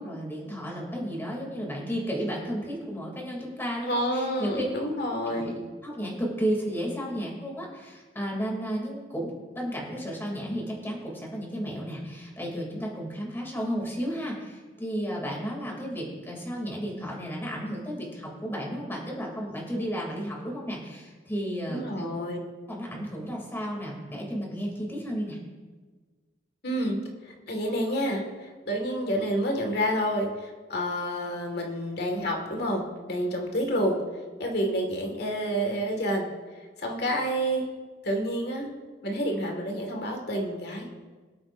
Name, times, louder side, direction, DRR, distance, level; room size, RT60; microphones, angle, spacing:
voice 1, 0.0-4.7 5.3-9.3 9.5-22.1 22.7-25.4, equal, 15° left, -2 dB, 2.8 m, -33 dB
voice 2, 3.9-5.5 21.7-22.4 26.6-27.0 27.2-34.0 34.4-36.3 36.8-37.7 38.0-38.7 39.0-40.9, equal, 60° left, 1 dB, 2.0 m, -29 dB
24.0 x 8.7 x 2.6 m, 1.4 s
head